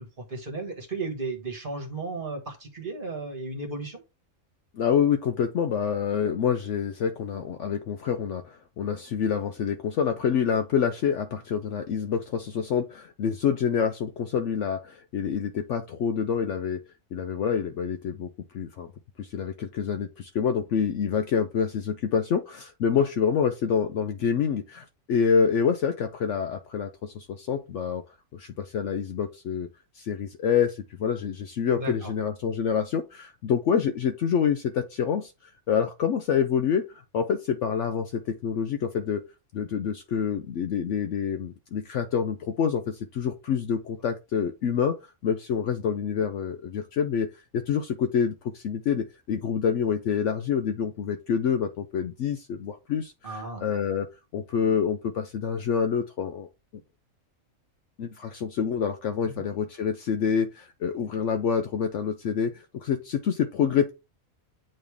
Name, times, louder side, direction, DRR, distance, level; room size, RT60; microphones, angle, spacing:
voice 1, 0.0-4.0 31.7-32.1 40.2-40.3 53.2-53.6 59.3-59.5, right 3 dB, 40° right, 1.5 m, -35 dB
voice 2, 4.7-16.8 17.1-18.3 18.5-18.9 19.2-28.0 28.3-29.7 30.0-35.3 35.7-36.8 37.1-39.2 39.5-45.0 45.2-56.5 58.0-63.9, left 7 dB, 65° left, 0.9 m, -27 dB
8.8 x 3.2 x 3.5 m
omnidirectional pair, 1.4 m